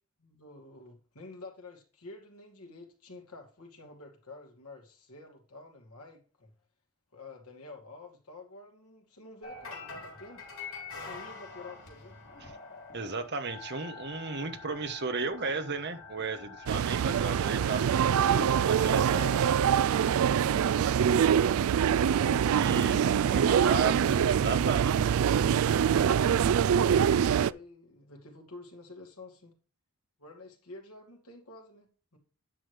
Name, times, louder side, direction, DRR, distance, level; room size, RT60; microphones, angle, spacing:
voice 1, 0.2-6.5 7.1-10.4 10.9-12.2 19.1-23.4 26.0-29.5 30.2-32.2, left 3 dB, 90° left, 2.5 m, -49 dB
sound 1, 9.4-19.6, left 4 dB, 65° left, 3.4 m, -46 dB
voice 2, 12.9-19.2 22.5-25.2, right 4 dB, 50° right, 1.2 m, -35 dB
sound 2, 16.7-27.5, right 8 dB, 70° right, 0.3 m, -24 dB
10.0 x 6.4 x 3.4 m
head